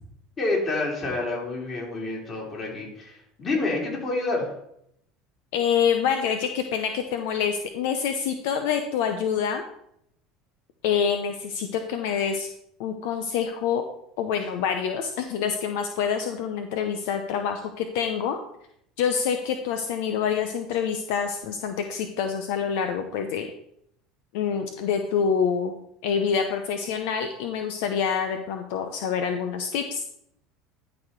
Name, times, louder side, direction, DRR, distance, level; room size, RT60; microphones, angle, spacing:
voice 1, 0.4-4.5, left 2 dB, 35° left, -2 dB, 3.9 m, -28 dB
voice 2, 5.5-9.6 10.8-12.5 12.8-13.8 14.2-18.4 19.0-23.5 24.3-30.0, left 7 dB, 75° left, 6 dB, 0.7 m, -26 dB
11.5 x 4.2 x 4.6 m, 0.74 s
supercardioid pair, 95°, 0 cm